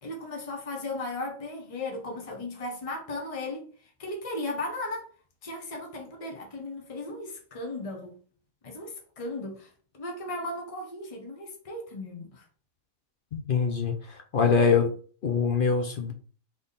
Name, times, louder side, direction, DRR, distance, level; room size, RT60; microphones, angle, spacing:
voice 1, 0.0-3.7 4.0-5.1 5.4-8.2 8.6-9.7 10.0-12.4, left 2 dB, 25° left, 0.9 m, -36 dB
voice 2, 13.3-14.9 15.2-16.1, left 5 dB, 55° left, 0.6 m, -24 dB
3.5 x 3.4 x 4.0 m
omnidirectional pair, 1.5 m